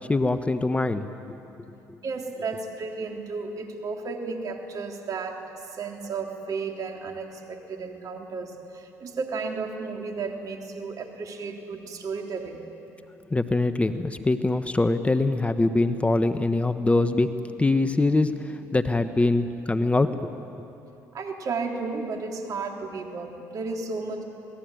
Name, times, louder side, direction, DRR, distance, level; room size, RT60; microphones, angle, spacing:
voice 1, 0.1-1.1 13.3-17.3 17.6-20.3, left 2 dB, 15° left, 10 dB, 1.2 m, -23 dB
voice 2, 2.0-12.7 21.1-24.2, right 4 dB, 50° right, 2 dB, 3.7 m, -33 dB
27.5 x 19.5 x 9.3 m, 2.9 s
hypercardioid pair, 65°, 7 cm